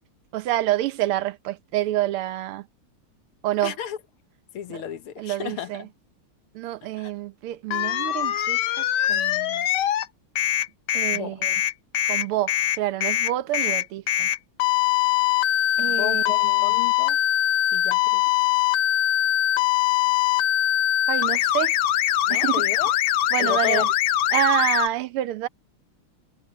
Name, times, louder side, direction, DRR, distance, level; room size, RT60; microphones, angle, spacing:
voice 1, 0.3-2.7 3.4-3.8 4.7-4.8 5.2-5.9 6.6-9.7 10.9-11.5 12.1-14.3 15.8-16.8 21.1-21.7 22.3-22.7 23.3-23.9 24.3-25.5, right 14 dB, 85° right, 1.7 m, -28 dB
voice 2, 3.6-4.0 4.5-5.9 7.0-7.1 11.1-11.4 15.9-17.2 17.7-18.2 22.3-22.9 23.4-23.8, left 11 dB, 80° left, 2.0 m, -33 dB
sound 1, 7.7-10.1 10.4-24.9, left 13 dB, 65° left, 1.2 m, -22 dB
omnidirectional pair, 2.4 m